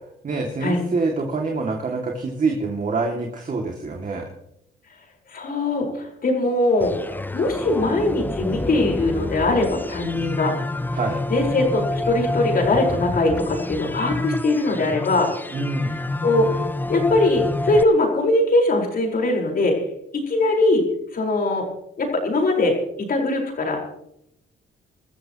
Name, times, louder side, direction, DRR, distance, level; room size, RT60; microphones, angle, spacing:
voice 1, 0.2-4.3 10.9-11.2 15.5-16.0, right 3 dB, 40° right, 1 dB, 2.4 m, -26 dB
voice 2, 5.3-6.9 7.3-10.5 11.3-15.3 16.2-16.6 16.9-19.8 20.1-20.8 21.1-21.6 22.0-22.8 23.1-23.8, left 2 dB, 45° left, 1 dB, 4.8 m, -21 dB
sound 1, 6.8-17.8, left 2 dB, 10° left, 0.6 m, -28 dB
23.5 x 13.5 x 3.0 m, 0.77 s
cardioid pair, 90°, 20 cm